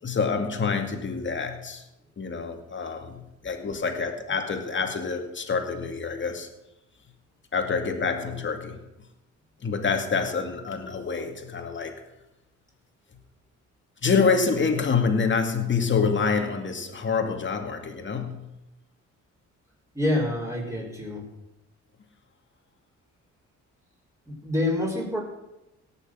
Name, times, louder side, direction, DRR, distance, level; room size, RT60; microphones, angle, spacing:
voice 1, 0.0-1.8 2.2-6.5 7.5-8.8 9.6-12.0 14.0-18.4, left 5 dB, 40° left, 5 dB, 2.2 m, -26 dB
voice 2, 19.9-21.2 24.3-25.2, left 1 dB, 10° right, -4 dB, 4.7 m, -27 dB
18.0 x 6.8 x 6.2 m, 0.93 s
cardioid pair, 90°, 30 cm